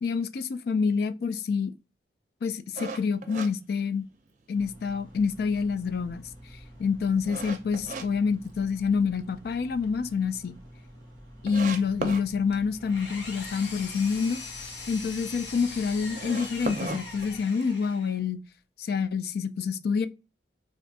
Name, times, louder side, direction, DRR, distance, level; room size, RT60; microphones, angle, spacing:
voice 1, 0.0-1.7 2.4-4.0 4.5-6.2 6.8-10.5 11.4-14.4 14.9-18.4 18.8-20.1, left 5 dB, 55° left, 0.3 m, -27 dB
sound 1, 2.8-4.5 4.9-5.0 5.5-8.1 8.4-9.2 9.5-9.6 10.0-10.1 10.3-10.4 11.0-11.1 11.5-12.3 16.0-17.9, right 3 dB, 45° right, 0.5 m, -36 dB
sound 2, 4.5-17.4, equal, 20° left, 1.0 m, -49 dB
Engine, 12.5-18.2, left 3 dB, 75° left, 0.8 m, -41 dB
2.6 x 2.4 x 4.0 m
head